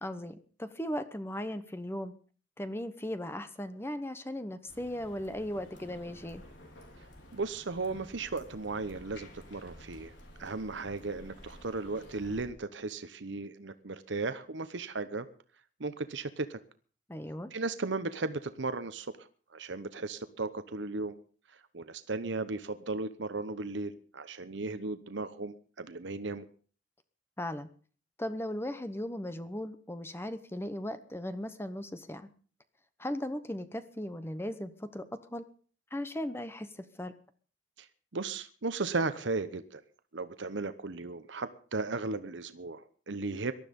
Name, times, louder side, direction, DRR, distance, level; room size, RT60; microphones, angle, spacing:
voice 1, 0.0-2.1 2.6-6.4 17.1-17.5 27.4-27.7 28.2-32.3 33.0-35.1 35.3-35.4 35.9-37.1, left 1 dB, 15° left, 11 dB, 0.9 m, -37 dB
sound 1, 4.7-12.5, left 1 dB, 75° left, 4.4 m, -52 dB
voice 2, 7.3-10.1 10.4-15.3 15.8-16.6 17.5-21.2 21.5-26.5 37.8-37.9 38.1-39.8 40.1-43.5, right 3 dB, 75° right, 11 dB, 0.9 m, -36 dB
19.0 x 12.5 x 5.3 m, 0.42 s
head